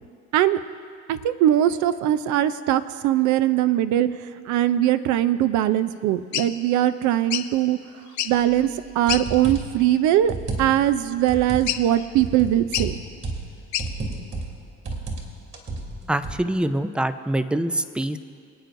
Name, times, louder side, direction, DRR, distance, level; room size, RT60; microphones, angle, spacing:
voice 1, 1.1-4.1 4.5-7.8 8.2-8.7 9.0-10.3 10.6-13.0, right 12 dB, 75° right, 14 dB, 0.6 m, -21 dB
sound 1, 6.3-6.5 7.3-7.5 8.1-8.5 9.1-9.3 9.8-10.0 11.7-12.0 12.7-12.9 13.7-13.9, left 12 dB, 75° left, 0.6 m, -28 dB
sound 2, 8.6-8.7 9.1-9.8 10.2-10.9 11.3-11.7 12.2-13.5 13.8-14.6 14.9-15.3 15.5-16.4, right 3 dB, 45° right, 2.9 m, -31 dB
voice 2, 16.1-18.2, right 1 dB, 5° right, 11 dB, 0.3 m, -24 dB
25.5 x 9.0 x 2.6 m, 2.2 s
cardioid pair, 120°, 29 cm